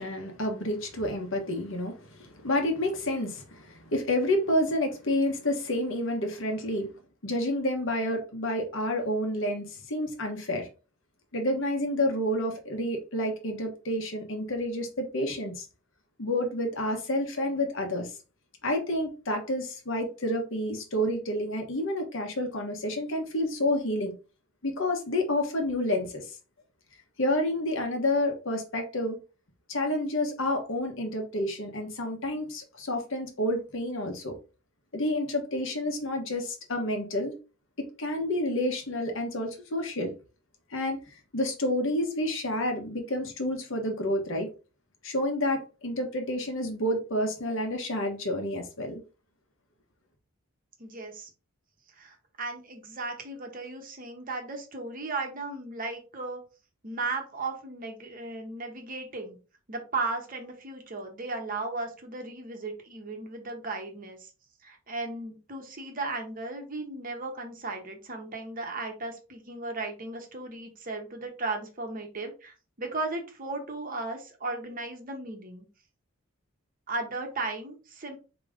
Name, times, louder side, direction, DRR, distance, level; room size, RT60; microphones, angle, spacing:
voice 1, 0.0-6.9 7.2-10.7 11.3-15.6 16.2-18.1 18.6-24.1 24.6-26.3 27.2-29.2 29.7-34.3 34.9-37.4 37.8-40.1 40.7-41.0 41.3-44.5 45.0-49.0, left 1 dB, 60° left, 1.2 m, -29 dB
voice 2, 50.8-51.3 52.0-56.4 56.8-59.4 59.7-64.3 64.6-75.7 76.9-78.2, right 3 dB, 40° right, 1.1 m, -36 dB
4.8 x 3.0 x 3.6 m
head